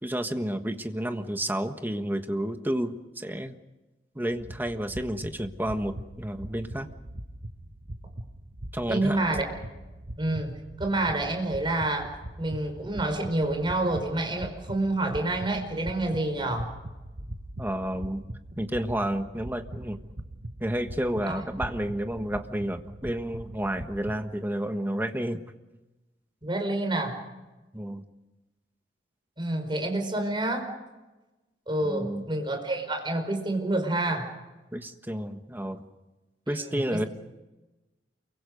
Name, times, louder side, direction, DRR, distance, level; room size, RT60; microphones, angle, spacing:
voice 1, 0.0-3.6 4.1-6.9 8.7-9.2 17.6-18.2 18.6-20.0 20.6-25.4 27.7-28.0 31.8-32.2 34.7-35.8 36.5-37.0, right 1 dB, 10° right, 7 dB, 1.4 m, -31 dB
sound 1, 4.3-24.2, right 1 dB, 55° right, 1.5 m, -41 dB
voice 2, 8.9-9.5 10.2-12.1 12.4-16.7 21.3-21.4 26.4-27.2 29.4-30.7 31.7-34.3 36.5-37.1, right 2 dB, 30° right, 4 dB, 5.0 m, -28 dB
28.5 x 23.5 x 5.3 m, 1.1 s
head